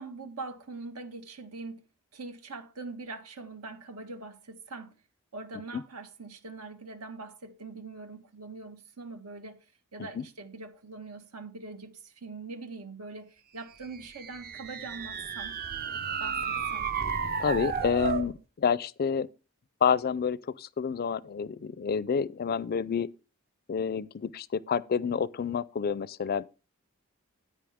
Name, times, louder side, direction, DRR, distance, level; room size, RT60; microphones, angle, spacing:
voice 1, 0.0-1.8 2.1-5.0 5.3-9.6 9.9-15.5 16.2-16.9, right 3 dB, 80° right, 1.6 m, -43 dB
sound 1, 13.9-18.3, right 6 dB, 45° right, 0.7 m, -33 dB
voice 2, 17.4-19.3 19.8-23.1 23.7-26.4, left 6 dB, 45° left, 0.4 m, -29 dB
9.9 x 9.2 x 3.5 m
head